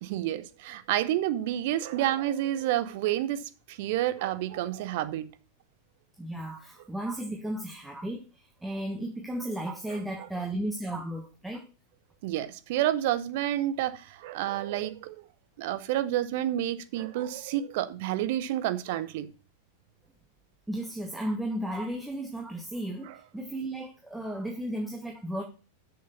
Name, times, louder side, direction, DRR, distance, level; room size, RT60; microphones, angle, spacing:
voice 1, 0.0-5.3 9.9-10.3 12.2-15.1 15.6-19.3 23.1-23.2, right 13 dB, 50° right, 0.8 m, -29 dB
voice 2, 6.2-11.7 20.7-25.4, right 1 dB, 5° right, 1.4 m, -34 dB
6.7 x 6.7 x 5.7 m
figure-of-eight pair, 90°, 0 cm